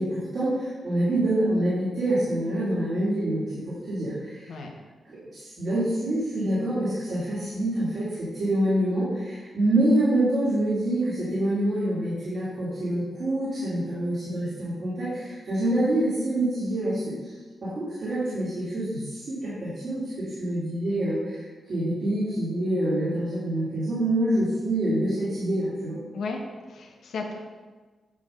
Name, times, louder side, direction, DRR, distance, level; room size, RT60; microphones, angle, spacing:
voice 1, 0.0-3.5 3.8-4.6 5.0-17.3 17.6-26.0, right 1 dB, 50° right, -9 dB, 2.6 m, -26 dB
voice 2, 26.7-27.4, left 4 dB, 80° left, 1 dB, 1.2 m, -34 dB
9.6 x 3.6 x 6.5 m, 1.3 s
wide cardioid pair, 160°, 0 cm